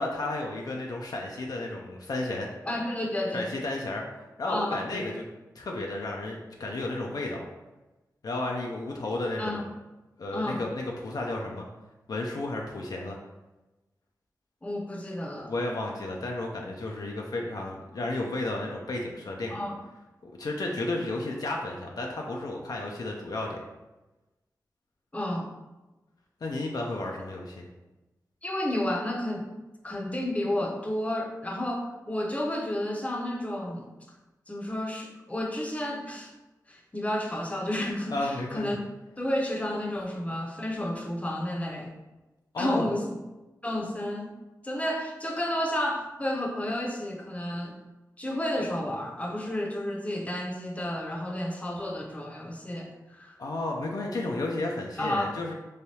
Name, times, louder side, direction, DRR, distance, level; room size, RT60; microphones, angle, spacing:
voice 1, 0.0-2.5 3.3-4.0 4.4-5.2 5.6-7.4 8.2-9.6 10.2-11.7 12.1-13.2 15.5-19.6 20.2-23.6 26.4-27.7 38.1-38.8 42.5-42.9 53.4-55.5, left 2 dB, 65° left, 0 dB, 0.4 m, -32 dB
voice 2, 2.7-3.5 4.5-4.9 9.4-9.7 10.3-10.6 14.6-15.5 19.5-19.8 25.1-25.5 28.4-29.4 29.8-33.9 34.5-36.3 36.7-38.8 39.2-41.9 42.6-43.0 43.6-44.3 44.6-47.8 48.2-53.4 55.0-55.3, left 1 dB, 20° left, 0 dB, 0.6 m, -31 dB
3.2 x 2.2 x 2.7 m, 1.1 s
cardioid pair, 45°, 7 cm